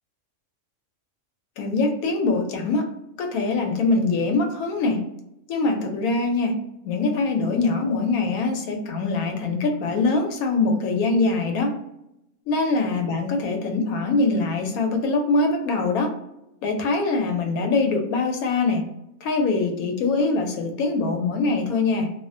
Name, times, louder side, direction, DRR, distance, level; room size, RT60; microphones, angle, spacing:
voice 1, 1.6-2.9 3.2-5.0 5.5-6.6 6.8-11.8 12.5-16.1 16.6-18.9 19.2-22.1, left 3 dB, 85° left, 4 dB, 1.0 m, -23 dB
2.6 x 2.0 x 2.5 m, 0.84 s
omnidirectional pair, 1.5 m